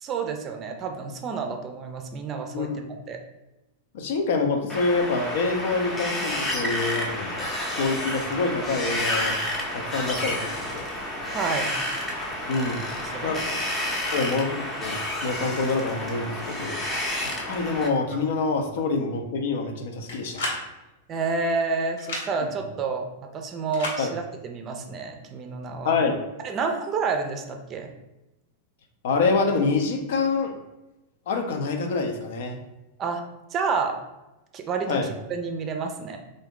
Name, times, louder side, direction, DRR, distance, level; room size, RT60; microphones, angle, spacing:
voice 1, 0.0-3.2 11.3-11.7 13.0-13.5 21.1-23.1 23.3-26.0 26.4-27.9 33.0-33.2 33.5-34.0 34.5-35.0 35.3-36.2, right 4 dB, 30° right, 5 dB, 0.5 m, -29 dB
voice 2, 3.9-7.5 7.8-9.4 9.7-10.9 12.5-12.8 13.2-13.4 14.1-14.6 14.8-17.0 17.5-20.6 24.0-24.1 25.8-26.2 29.0-30.5 31.3-32.6 34.9-35.1, left 4 dB, 70° left, 4 dB, 0.6 m, -26 dB
Wind, 4.7-17.9, left 1 dB, 15° left, 0.7 m, -30 dB
sound 1, 20.1-20.6 22.0-22.3 23.7-24.0, left 2 dB, 85° left, 1.1 m, -30 dB
3.5 x 2.6 x 3.7 m, 1.0 s
supercardioid pair, 145°, 0 cm